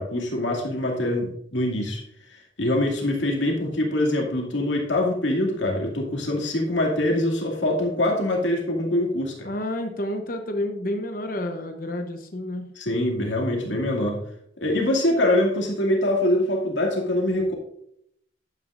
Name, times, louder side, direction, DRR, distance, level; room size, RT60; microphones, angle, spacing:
voice 1, 0.0-2.0 2.3-9.5 12.8-14.2 14.6-17.5, left 1 dB, 80° left, 0 dB, 2.3 m, -24 dB
voice 2, 9.4-12.7, left 1 dB, 45° left, 5 dB, 0.9 m, -30 dB
11.0 x 9.5 x 2.5 m, 0.71 s
head